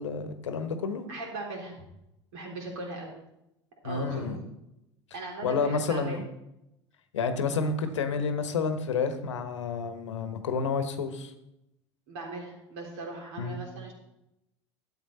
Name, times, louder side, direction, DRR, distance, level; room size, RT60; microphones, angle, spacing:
voice 1, 0.0-1.0 3.8-4.4 5.4-6.2 7.1-11.3 13.4-13.6, left 5 dB, 75° left, 9 dB, 1.1 m, -30 dB
voice 2, 1.1-1.8 2.3-3.1 3.8-4.5 5.1-6.2 12.1-13.9, right 2 dB, 65° right, 0 dB, 3.4 m, -39 dB
12.0 x 7.8 x 4.3 m, 0.87 s
figure-of-eight pair, 75°, 16 cm